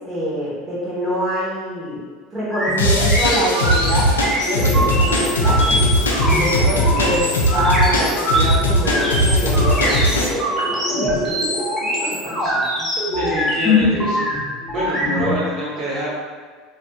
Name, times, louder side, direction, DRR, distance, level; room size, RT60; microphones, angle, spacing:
voice 1, 0.0-2.0 2.3-5.8 6.2-11.0 12.1-12.4, equal, 20° right, -9 dB, 0.9 m, -25 dB
sound 1, 2.5-15.4, left 1 dB, 20° left, 0.7 m, -22 dB
sound 2, 2.8-10.3, equal, 85° left, 0.3 m, -19 dB
Gurgling, 4.4-12.8, equal, 75° right, 0.7 m, -30 dB
voice 2, 6.6-6.9 12.4-12.9 13.1-14.3 14.7-16.1, right 1 dB, 55° right, -9 dB, 1.1 m, -27 dB
2.4 x 2.2 x 2.7 m, 1.5 s
hypercardioid pair, 75°, 0 cm